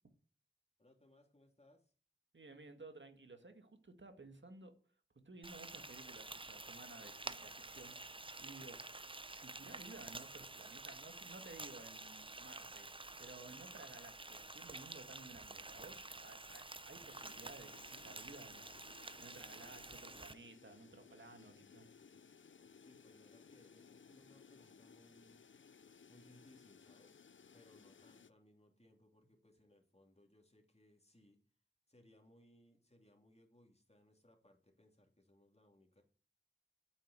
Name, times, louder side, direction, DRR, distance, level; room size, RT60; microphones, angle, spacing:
voice 1, 0.8-1.9 13.7-14.0 22.7-25.5 26.1-27.2 27.5-31.4 31.9-36.0, left 1 dB, 35° left, 4 dB, 2.8 m, -67 dB
voice 2, 2.3-4.7 5.2-8.8 9.3-12.9 13.2-18.7 19.2-21.9, right 3 dB, 70° right, 6 dB, 2.0 m, -56 dB
Frying (food), 5.4-20.3, right 2 dB, 25° right, 0.7 m, -50 dB
sound 1, 17.1-28.3, left 6 dB, 80° left, 0.5 m, -62 dB
9.5 x 8.4 x 8.3 m, 0.42 s
wide cardioid pair, 55°, 20 cm